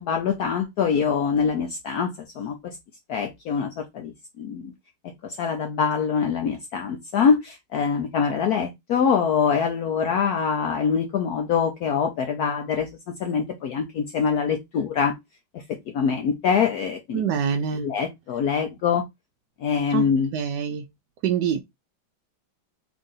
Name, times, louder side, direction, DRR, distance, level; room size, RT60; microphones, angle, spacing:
voice 1, 0.0-2.1 2.4-2.6 3.1-4.7 5.2-12.9 13.2-15.1 15.9-17.2 17.8-19.0 19.6-20.3, left 6 dB, 75° left, 0.9 m, -24 dB
voice 2, 17.1-17.9 19.9-20.9 21.2-21.6, right 7 dB, 75° right, 1.0 m, -25 dB
3.7 x 2.5 x 3.8 m
omnidirectional pair, 2.2 m